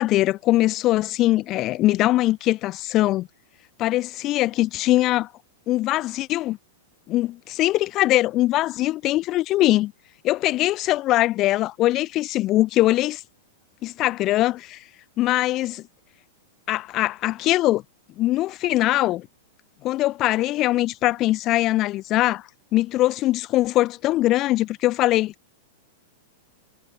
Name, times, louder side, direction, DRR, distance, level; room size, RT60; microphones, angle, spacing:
voice 1, 0.0-3.3 3.8-5.3 5.7-6.6 7.1-9.9 10.2-13.2 13.8-14.8 15.2-15.8 16.7-17.8 18.2-19.3 19.8-25.3, left 16 dB, 20° left, 3.9 m, -22 dB
supercardioid pair, 180°, 0 cm